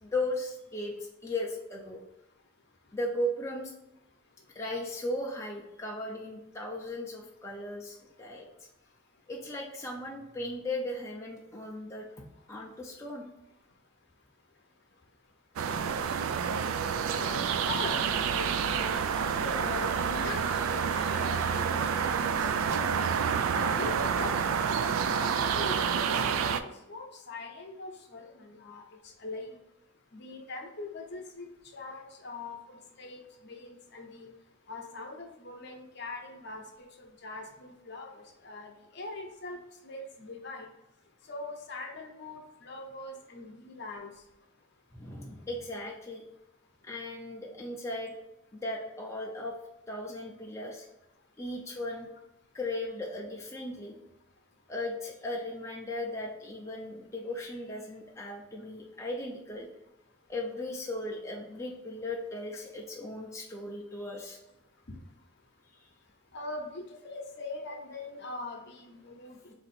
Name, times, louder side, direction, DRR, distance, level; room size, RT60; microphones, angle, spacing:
voice 1, 0.0-2.0 2.9-3.7 4.5-8.4 9.3-12.1 12.5-13.3 44.9-46.2 46.8-48.1 48.5-49.5 49.9-50.9 51.4-52.1 52.5-54.0 54.7-59.7 60.3-64.4 65.7-65.9, left 1 dB, 15° left, -2 dB, 0.4 m, -37 dB
sound 1, 15.6-26.6, right 7 dB, 85° right, 0.3 m, -28 dB
voice 2, 17.1-19.0 19.4-22.9 23.5-24.3 25.1-26.0 26.6-28.8 29.2-29.5 30.1-31.5 31.7-34.3 34.7-39.6 39.8-40.7 41.3-44.1 64.9-65.0 66.3-69.5, left 2 dB, 55° left, 2 dB, 0.7 m, -41 dB
4.0 x 2.6 x 4.2 m, 0.91 s
head